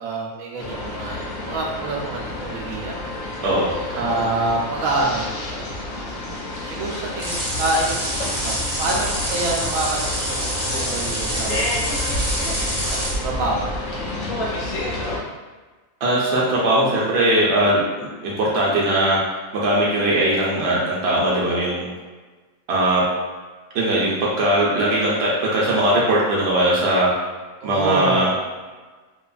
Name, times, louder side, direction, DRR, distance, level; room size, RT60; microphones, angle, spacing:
voice 1, 0.0-2.9 3.9-5.7 6.7-13.8 14.1-14.8 27.6-28.4, right 2 dB, 90° right, -1 dB, 1.0 m, -27 dB
sound 1, 0.6-15.2, left 1 dB, 75° left, 1.0 m, -29 dB
voice 2, 3.4-4.1 16.0-19.2 19.5-21.9 22.7-23.0 23.7-27.1 27.6-28.3, right 1 dB, 60° right, -5 dB, 0.7 m, -20 dB
sound 2, 7.2-13.1, equal, 25° right, 1.0 m, -26 dB
2.8 x 2.4 x 2.3 m, 1.3 s
omnidirectional pair, 1.4 m